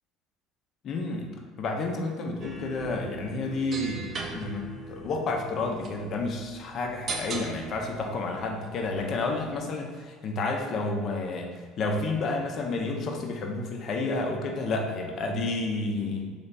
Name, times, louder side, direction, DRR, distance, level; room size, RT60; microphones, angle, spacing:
voice 1, 0.8-16.3, left 3 dB, 50° left, 2 dB, 0.7 m, -30 dB
sound 1, 2.4-9.6, right 3 dB, 40° right, 0.5 m, -40 dB
3.3 x 3.3 x 4.0 m, 1.6 s
supercardioid pair, 105°, 0 cm